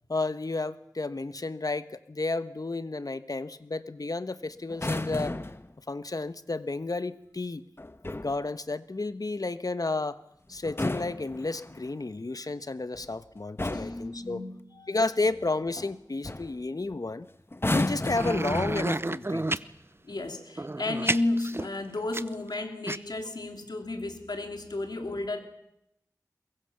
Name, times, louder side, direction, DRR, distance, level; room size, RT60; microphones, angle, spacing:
voice 1, 0.1-5.3 5.9-7.6 8.1-10.2 10.5-14.4 14.9-17.3 17.7-19.5, left 3 dB, 65° left, 13 dB, 1.2 m, -32 dB
sound 1, 4.7-5.7 7.8-8.4 10.6-11.9 13.0-13.2 13.6-14.1 15.8-15.9 16.2-16.6 17.5-19.2 20.1-20.4, left 2 dB, 35° left, 1.3 m, -33 dB
voice 2, 13.7-15.3 20.0-25.4, left 2 dB, 85° left, 6 dB, 2.9 m, -33 dB
sound 2, 18.1-19.7 20.5-22.5 22.9-23.0, right 2 dB, 35° right, 0.8 m, -30 dB
22.5 x 22.5 x 7.0 m, 0.79 s
wide cardioid pair, 45°, 7 cm